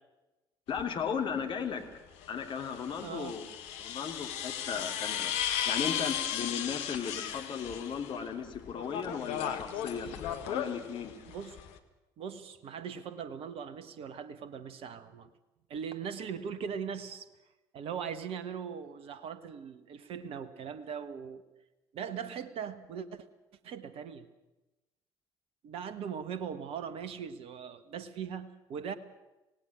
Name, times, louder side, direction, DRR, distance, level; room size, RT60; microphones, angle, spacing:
sound 1, 0.7-0.8 2.2-8.2 8.5-11.8, left 9 dB, 65° left, 1.7 m, -36 dB
voice 1, 0.7-1.9 2.3-3.5 3.8-5.3 5.6-10.2 10.4-11.1, left 7 dB, 45° left, 4 dB, 3.0 m, -36 dB
voice 2, 3.0-3.4 11.3-11.6 12.2-15.3 15.7-17.3 17.7-21.4 21.9-23.2 23.6-24.3 25.6-28.9, right 7 dB, 50° right, 13 dB, 1.5 m, -40 dB
26.0 x 18.0 x 6.4 m, 1.0 s
figure-of-eight pair, 55°, 12 cm